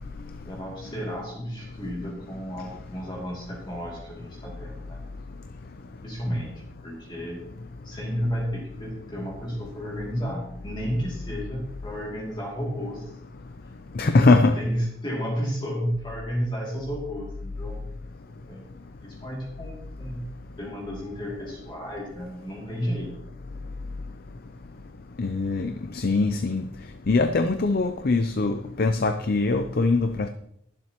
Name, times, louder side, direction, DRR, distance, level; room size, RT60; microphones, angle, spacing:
voice 1, 0.5-5.0 6.0-7.4 7.8-13.2 14.0-14.3 14.6-17.8 18.5-18.7 19.0-20.2 20.6-23.1, equal, 25° left, -3 dB, 2.6 m, -32 dB
voice 2, 14.0-14.5 25.2-26.6 27.1-30.3, left 3 dB, 45° left, 8 dB, 0.5 m, -22 dB
21.5 x 7.5 x 3.0 m, 0.74 s
head